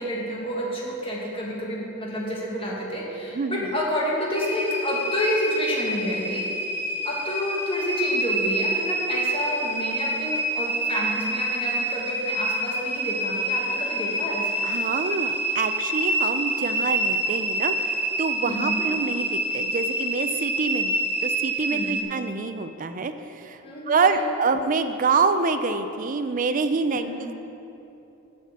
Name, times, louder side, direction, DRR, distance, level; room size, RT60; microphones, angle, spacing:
voice 1, 0.0-6.5 7.0-14.6 18.4-18.9 21.7-22.0 23.6-24.3 24.5-24.7 26.9-27.2, equal, 25° left, -4 dB, 1.6 m, -29 dB
voice 2, 3.3-3.7 14.6-23.6 23.9-27.4, right 4 dB, 40° right, 9 dB, 0.4 m, -26 dB
sound 1, 4.3-22.0, right 1 dB, 10° right, 0.7 m, -27 dB
7.6 x 5.7 x 7.3 m, 3.0 s
head